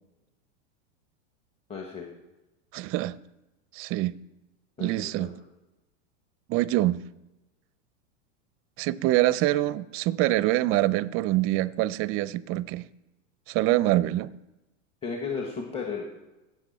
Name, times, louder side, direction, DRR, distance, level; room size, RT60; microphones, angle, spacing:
voice 1, 1.7-2.1 4.8-5.3 15.0-16.0, left 5 dB, 15° left, 1.5 m, -34 dB
voice 2, 2.7-3.1 3.7-4.1 4.8-5.3 6.5-7.0 8.8-12.8 13.5-14.3, right 16 dB, 35° right, 0.5 m, -25 dB
16.5 x 6.8 x 4.2 m
hypercardioid pair, 115°, 38 cm